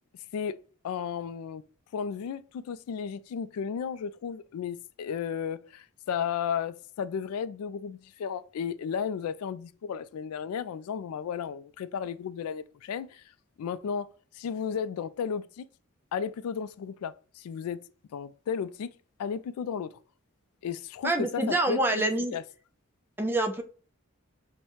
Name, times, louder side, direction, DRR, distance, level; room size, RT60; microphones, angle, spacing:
voice 1, 0.8-1.6 1.9-13.2 13.6-14.1 14.3-15.7 16.1-17.8 18.1-18.9 19.2-20.0 20.6-22.4, left 7 dB, 80° left, 0.3 m, -34 dB
voice 2, 21.0-22.4 23.2-23.6, right 1 dB, 10° right, 0.4 m, -26 dB
5.5 x 2.2 x 3.0 m
head